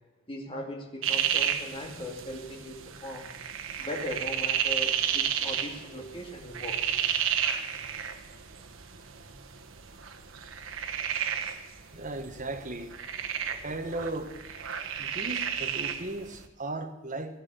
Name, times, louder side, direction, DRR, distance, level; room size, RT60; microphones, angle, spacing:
voice 1, 0.3-3.3 3.8-7.1, left 1 dB, 25° left, 2.3 m, -39 dB
sound 1, 1.0-16.5, right 8 dB, 80° right, 1.1 m, -32 dB
voice 2, 11.9-12.9 13.5-14.4 15.0-17.4, right 2 dB, 40° right, 1.3 m, -36 dB
17.5 x 11.0 x 6.9 m
head